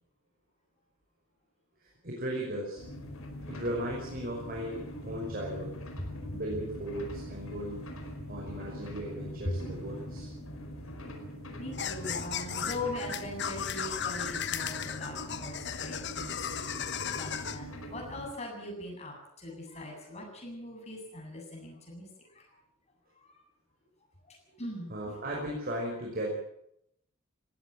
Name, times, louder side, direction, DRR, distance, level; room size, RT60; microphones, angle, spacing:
voice 1, 1.8-2.8 3.5-5.7 6.3-7.8 8.2-10.3 24.9-26.3, right 1 dB, 45° right, -2 dB, 5.6 m, -36 dB
sound 1, 2.8-18.3, equal, 85° left, 5.0 m, -43 dB
voice 2, 6.0-6.3 9.4-9.6 11.6-16.7 17.1-22.1 22.3-22.4 23.2-23.3 24.2-24.9, left 1 dB, 30° left, 1 dB, 8.0 m, -40 dB
sound 2, 11.7-17.6, left 8 dB, 55° left, 1.3 m, -36 dB
19.5 x 16.5 x 8.9 m, 0.76 s
head